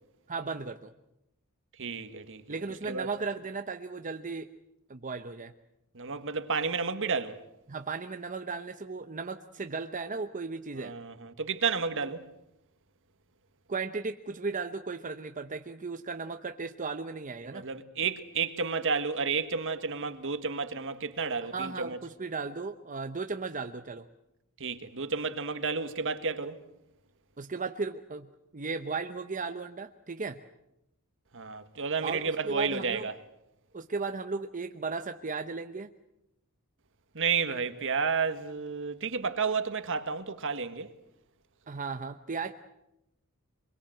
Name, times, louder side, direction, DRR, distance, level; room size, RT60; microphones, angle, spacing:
voice 1, 0.3-0.9 2.5-4.5 4.9-5.5 7.7-10.9 13.7-17.7 21.4-24.1 27.4-28.3 28.5-30.4 32.0-33.1 33.7-35.9 41.7-42.5, right 4 dB, 35° right, 0.8 m, -36 dB
voice 2, 1.8-2.6 2.9-3.1 5.9-7.4 10.8-12.3 17.5-22.0 24.6-26.6 31.3-33.1 37.1-40.9, right 5 dB, 60° right, 1.6 m, -31 dB
24.5 x 22.5 x 7.8 m
head